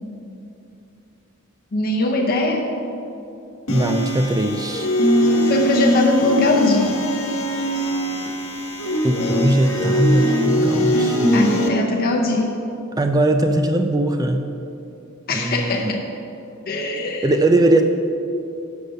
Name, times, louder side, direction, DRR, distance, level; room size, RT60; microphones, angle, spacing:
voice 1, 1.7-2.7 5.4-6.9 11.3-12.5 15.3-16.0 16.7-17.3, left 2 dB, 45° left, 1 dB, 0.6 m, -21 dB
sound 1, 3.7-11.7, left 1 dB, 70° left, 1.1 m, -21 dB
voice 2, 3.7-4.9 9.0-11.5 13.0-14.5 15.3-15.9 17.2-17.8, right 1 dB, 15° right, 6 dB, 0.3 m, -20 dB
6.6 x 6.5 x 5.5 m, 2.7 s
head